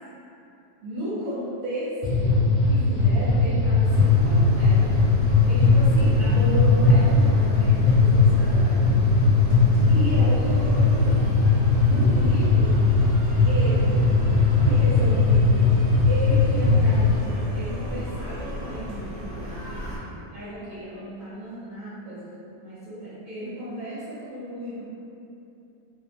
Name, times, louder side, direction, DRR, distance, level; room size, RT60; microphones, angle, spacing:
voice 1, 0.8-5.0 5.5-8.9 9.9-11.3 11.8-12.9 13.4-14.1 14.6-22.3 22.6-24.8, equal, 65° right, -12 dB, 1.0 m, -34 dB
sound 1, 2.0-17.2, left 3 dB, 80° left, 1.1 m, -19 dB
sound 2, 3.8-20.0, equal, 85° right, 0.5 m, -35 dB
2.6 x 2.0 x 2.7 m, 2.7 s
omnidirectional pair, 1.7 m